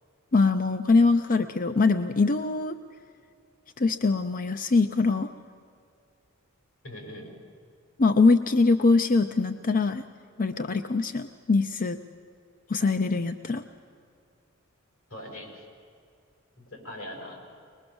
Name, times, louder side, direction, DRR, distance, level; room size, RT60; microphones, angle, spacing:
voice 1, 0.3-2.8 3.8-5.3 8.0-10.0 10.4-12.0 12.7-13.6, left 3 dB, 40° left, 9 dB, 0.6 m, -23 dB
voice 2, 6.8-7.3 15.1-15.6 16.7-17.4, left 1 dB, 90° left, 1 dB, 5.7 m, -41 dB
22.5 x 21.0 x 7.1 m, 2.4 s
head